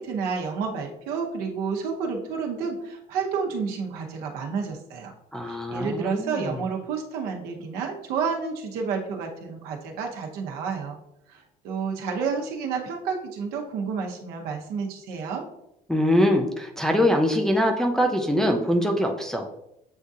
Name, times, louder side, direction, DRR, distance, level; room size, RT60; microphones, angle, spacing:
voice 1, 0.0-5.1 5.4-11.0 11.3-15.4, right 5 dB, 90° right, 1 dB, 0.9 m, -30 dB
voice 2, 5.3-6.6 15.9-19.5, equal, 5° left, 1 dB, 0.3 m, -23 dB
8.0 x 2.7 x 2.4 m, 0.84 s
cardioid pair, 175°, 15 cm